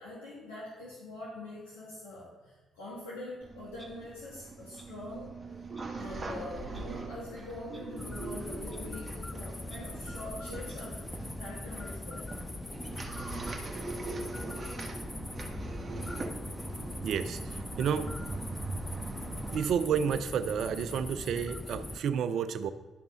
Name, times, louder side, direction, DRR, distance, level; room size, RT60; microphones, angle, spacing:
voice 1, 0.0-5.3 5.9-11.0 11.4-12.3, left 2 dB, 85° left, -8 dB, 2.0 m, -44 dB
sound 1, 3.4-19.6, right 3 dB, 35° right, 1.3 m, -41 dB
Clock, 3.8-3.9 4.8-4.9 5.7-5.9 6.7-6.8 7.7-7.8 8.7-8.8 9.7-9.8 10.7-10.8, right 1 dB, 5° right, 1.9 m, -54 dB
sound 2, 7.9-22.0, left 2 dB, 20° left, 0.5 m, -41 dB
voice 2, 17.0-18.1 19.5-22.7, right 7 dB, 65° right, 12 dB, 0.5 m, -31 dB
11.0 x 5.4 x 4.0 m, 1.2 s
hypercardioid pair, 45°, 0 cm